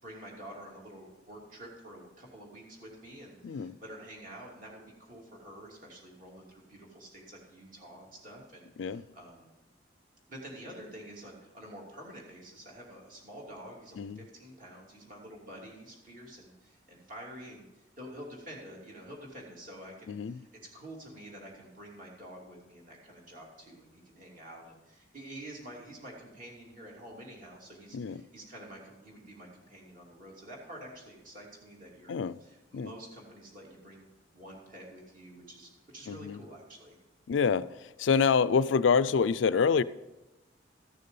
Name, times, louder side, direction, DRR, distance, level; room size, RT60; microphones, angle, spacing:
voice 1, 0.0-9.5 10.3-32.1 32.4-34.1 34.3-37.0, right 1 dB, 45° right, 2.8 m, -48 dB
voice 2, 3.4-3.8 8.8-9.0 14.0-14.2 20.1-20.4 27.9-28.2 32.1-32.4 32.7-32.9 36.1-36.4 37.3-39.8, left 6 dB, 85° left, 0.4 m, -27 dB
14.0 x 6.7 x 5.4 m
head